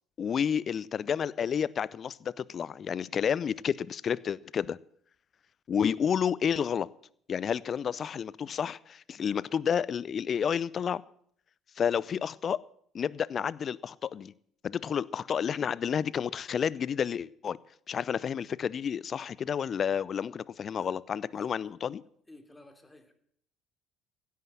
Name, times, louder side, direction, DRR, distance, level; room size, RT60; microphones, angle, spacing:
voice 1, 0.2-4.8 5.7-6.9 7.3-11.0 11.8-12.6 12.9-14.3 14.6-17.6 17.9-22.0, left 7 dB, 45° left, 0.5 m, -30 dB
voice 2, 22.3-23.1, left 2 dB, 10° left, 3.0 m, -54 dB
16.5 x 9.5 x 7.6 m
hypercardioid pair, 60°, 0 cm